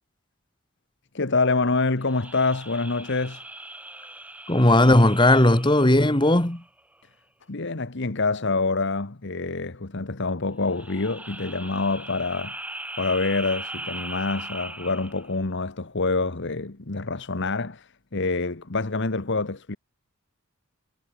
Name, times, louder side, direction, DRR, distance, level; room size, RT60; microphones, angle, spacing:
voice 1, 1.1-3.4 7.5-12.6 13.0-19.8, left 3 dB, 55° left, 1.3 m, -26 dB
sound 1, 2.0-6.8 10.6-15.4, right 1 dB, 5° right, 5.3 m, -39 dB
voice 2, 4.5-6.6, left 1 dB, 20° left, 1.9 m, -17 dB
head